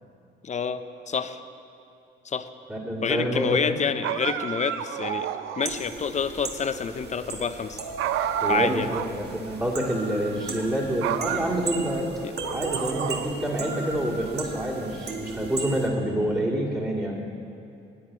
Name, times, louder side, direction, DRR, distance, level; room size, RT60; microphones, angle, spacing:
voice 1, 0.4-1.4 2.2-2.5 3.0-5.3 5.6-7.8 8.5-8.9 12.2-12.3, left 6 dB, 35° left, 11 dB, 0.6 m, -28 dB
voice 2, 2.7-3.8 8.4-12.1 12.5-17.2, right 1 dB, 15° right, -7 dB, 2.3 m, -27 dB
sound 1, 4.0-5.8 8.0-9.2 9.5-9.6 10.4-10.7 11.0-12.0 12.4-13.6, right 10 dB, 90° right, 0.5 m, -30 dB
sound 2, 5.6-15.9, right 3 dB, 55° right, 1.6 m, -36 dB
10.5 x 8.7 x 8.8 m, 2.6 s
cardioid pair, 90°, 20 cm